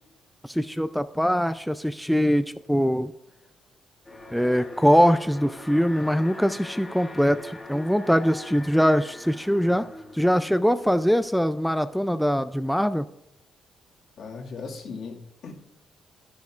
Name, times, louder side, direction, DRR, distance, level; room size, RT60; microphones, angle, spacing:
voice 1, 0.4-3.1 4.3-9.9 10.1-13.1, equal, ahead, 11 dB, 0.3 m, -22 dB
Alarm, 4.0-11.1, left 1 dB, 20° left, 1.6 m, -42 dB
voice 2, 14.2-15.5, left 4 dB, 65° left, 0 dB, 1.9 m, -38 dB
11.0 x 10.5 x 2.4 m, 0.92 s
cardioid pair, 90°, 0 cm